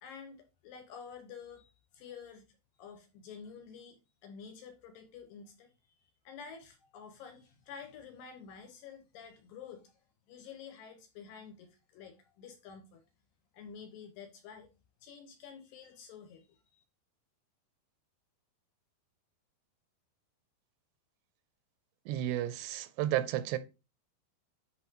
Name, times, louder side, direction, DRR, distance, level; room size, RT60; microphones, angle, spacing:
voice 1, 0.0-2.5 2.8-9.9 10.3-13.0 13.5-14.7 15.0-16.8, left 6 dB, 80° left, 2.1 m, -50 dB
voice 2, 22.1-23.6, right 13 dB, 85° right, 2.6 m, -32 dB
10.0 x 3.9 x 3.0 m
omnidirectional pair, 4.8 m